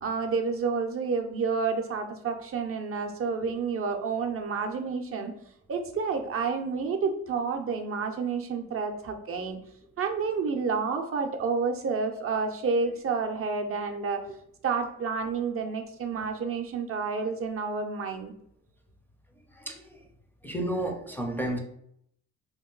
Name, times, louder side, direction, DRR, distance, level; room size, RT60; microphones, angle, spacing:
voice 1, 0.0-5.3 5.7-9.6 10.0-14.3 14.6-18.3, right 5 dB, 50° right, 3 dB, 0.5 m, -29 dB
voice 2, 19.5-20.1 20.4-21.6, right 1 dB, 5° left, 0 dB, 0.5 m, -33 dB
2.8 x 2.2 x 3.7 m, 0.71 s
cardioid pair, 90°, 30 cm